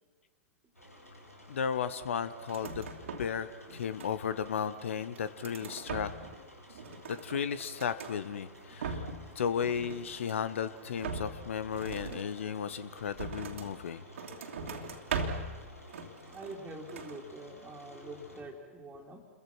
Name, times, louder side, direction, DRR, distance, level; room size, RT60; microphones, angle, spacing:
sound 1, 0.7-18.4, equal, 90° left, 4.9 m, -53 dB
voice 1, 1.5-2.9 3.2-6.1 7.1-9.1 9.3-14.0, left 7 dB, 60° left, 14 dB, 1.1 m, -34 dB
sound 2, 2.4-3.4 3.7-4.5 4.9-6.4 6.7-8.2 8.6-9.3 9.6-10.5 11.0-13.8 14.1-15.6 15.9-16.6 16.9-17.2, right 4 dB, 60° right, 2.8 m, -40 dB
voice 2, 16.3-19.2, right 2 dB, 15° right, -3 dB, 3.1 m, -45 dB
29.5 x 23.0 x 6.1 m, 1.5 s
figure-of-eight pair, 100°, 8 cm